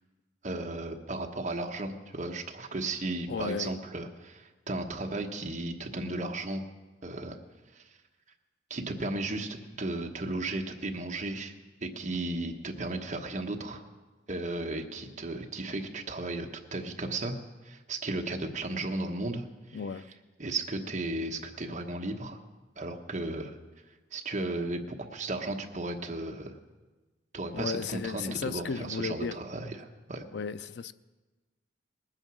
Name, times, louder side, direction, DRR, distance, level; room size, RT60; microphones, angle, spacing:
voice 1, 0.4-6.6 7.0-7.4 7.7-7.8 8.7-11.5 11.8-13.8 14.3-17.4 17.6-19.8 20.4-22.4 22.8-23.6 24.1-26.5 27.3-30.2, right 2 dB, 40° right, 3 dB, 1.1 m, -35 dB
voice 2, 3.3-3.7 19.7-20.1 27.5-29.4 30.3-30.9, left 5 dB, 65° left, 14 dB, 0.5 m, -34 dB
19.5 x 9.0 x 6.2 m, 1.2 s
head